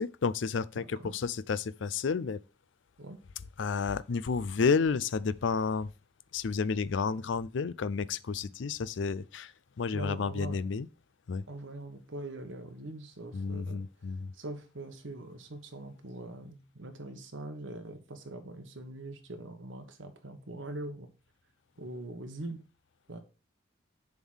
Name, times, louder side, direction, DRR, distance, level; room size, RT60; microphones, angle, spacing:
voice 1, 0.0-2.4 3.6-5.9 6.3-10.9 11.3-11.4 13.3-14.3, left 5 dB, 70° left, 0.4 m, -31 dB
voice 2, 0.8-1.1 3.0-3.2 9.9-10.6 11.5-13.8 14.3-21.1 21.8-22.6 23.1-23.2, right 2 dB, 80° right, 1.3 m, -42 dB
7.0 x 3.7 x 6.2 m
head